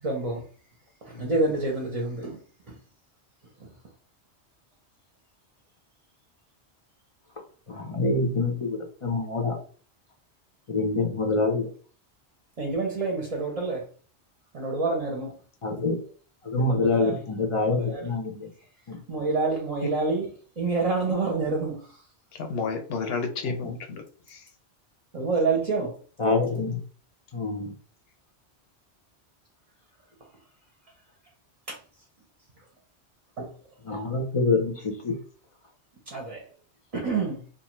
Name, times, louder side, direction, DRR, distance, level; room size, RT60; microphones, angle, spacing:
voice 1, 0.0-0.4 1.0-2.4 12.6-13.8 14.5-15.3 16.5-17.2 17.8-18.1 19.1-20.3 20.6-21.8 25.1-26.0 31.7-31.8 33.4-33.5 36.1-36.4 36.9-37.4, right 3 dB, 40° right, 0.7 m, -27 dB
voice 2, 7.7-9.6 10.7-11.7 15.6-16.1 16.4-18.5 18.9-19.0 26.2-26.8 27.3-27.7 33.8-35.2, left 3 dB, 40° left, 0.5 m, -26 dB
voice 3, 22.3-24.5, left 4 dB, 65° left, 0.8 m, -32 dB
2.5 x 2.4 x 3.0 m
omnidirectional pair, 1.1 m